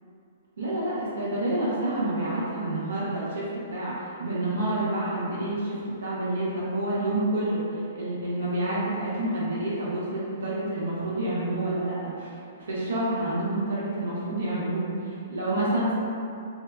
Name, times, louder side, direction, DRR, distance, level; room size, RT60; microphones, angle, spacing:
voice 1, 0.6-3.4 3.7-5.7 6.0-7.6 7.9-12.3 12.6-15.9, right 1 dB, 80° right, -8 dB, 0.6 m, -28 dB
2.8 x 2.2 x 2.3 m, 2.5 s
hypercardioid pair, 130°, 0 cm